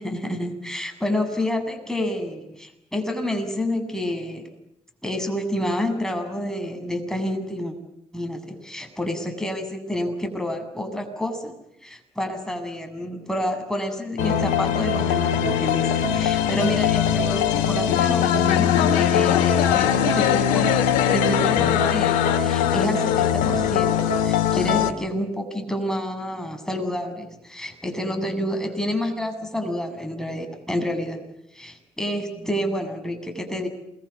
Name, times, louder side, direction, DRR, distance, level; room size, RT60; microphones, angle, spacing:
voice 1, 0.0-4.5 5.0-7.7 8.1-11.6 11.8-31.2 31.5-33.7, left 1 dB, 5° left, 5 dB, 8.0 m, -29 dB
sound 1, 14.2-24.9, left 9 dB, 85° left, 1.8 m, -21 dB
28.0 x 22.5 x 8.6 m, 0.83 s
hypercardioid pair, 45°, 13 cm